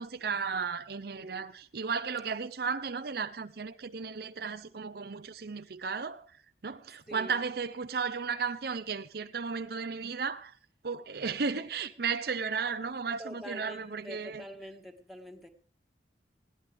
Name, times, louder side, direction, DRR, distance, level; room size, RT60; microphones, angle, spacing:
voice 1, 0.0-6.3 6.6-10.5 10.8-14.4, right 5 dB, 55° right, 0.6 m, -34 dB
voice 2, 1.0-1.6 7.1-7.4 13.2-15.5, equal, ahead, 1.8 m, -46 dB
20.0 x 16.5 x 3.5 m
head